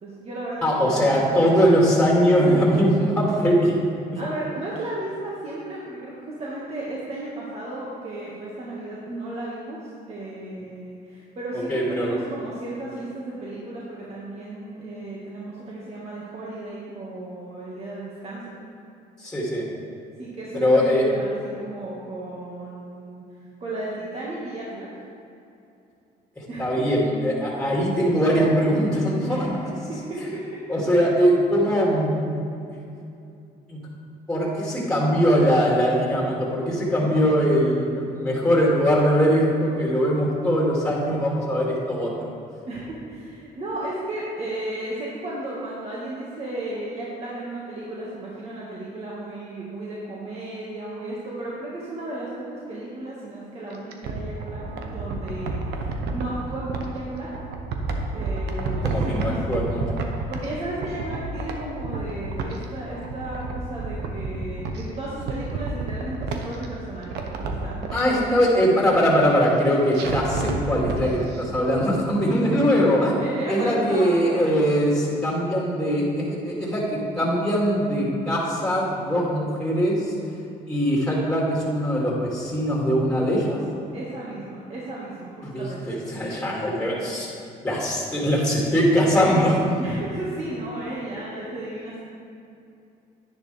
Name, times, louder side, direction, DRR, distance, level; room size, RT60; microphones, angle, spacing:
voice 1, 0.0-1.7 4.2-18.5 20.2-24.9 26.5-26.7 29.2-30.4 42.7-57.3 58.1-59.8 60.1-68.5 72.2-74.6 83.9-86.2 89.8-92.0, right 1 dB, 40° right, -6 dB, 1.9 m, -34 dB
voice 2, 0.6-3.8 4.1-4.2 11.7-12.1 19.2-19.6 20.5-21.1 26.4-29.5 30.7-32.3 33.7-33.8 34.3-42.3 58.7-59.8 67.9-73.2 73.5-80.1 80.7-83.6 85.4-87.3 87.6-89.6, equal, 5° left, -4 dB, 2.6 m, -21 dB
sound 1, 53.7-56.8 57.3-60.5 60.8-62.6 62.9-64.8 65.2-66.7 67.0-68.0 69.9-71.0 71.3-71.4, right 3 dB, 80° right, 1.1 m, -30 dB
10.5 x 10.5 x 3.5 m, 2.6 s
cardioid pair, 110°, 17 cm